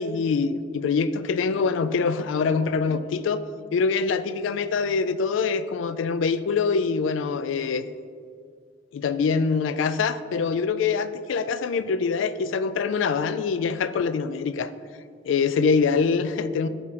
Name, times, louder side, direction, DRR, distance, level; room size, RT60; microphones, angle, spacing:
voice 1, 0.0-3.4 3.7-7.8 8.9-14.7 15.3-16.7, left 5 dB, 90° left, 13 dB, 0.3 m, -24 dB
8.3 x 3.7 x 4.2 m, 2.1 s
head